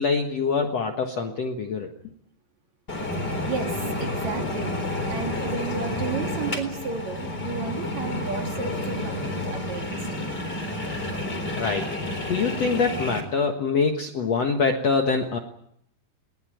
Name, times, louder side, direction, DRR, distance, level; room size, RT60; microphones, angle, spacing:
voice 1, 0.0-1.9 11.6-11.9 12.3-15.4, left 4 dB, 55° left, 4 dB, 1.9 m, -24 dB
sound 1, 2.9-13.2, left 1 dB, 25° left, 4.2 m, -30 dB
voice 2, 3.2-4.7 5.1-10.1, right 5 dB, 50° right, 4 dB, 2.9 m, -33 dB
21.0 x 19.5 x 9.2 m, 0.72 s
omnidirectional pair, 4.8 m